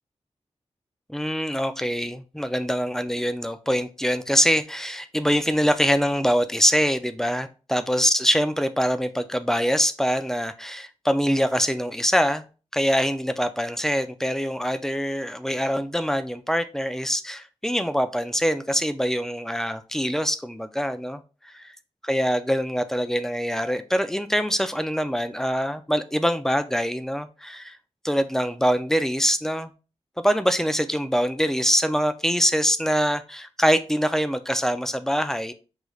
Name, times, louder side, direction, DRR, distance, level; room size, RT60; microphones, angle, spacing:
voice 1, 1.1-21.7 22.0-27.8 28.0-29.7 30.2-35.5, equal, 5° left, 0.3 m, -24 dB
4.9 x 3.1 x 2.3 m
wide cardioid pair, 125°, 11 cm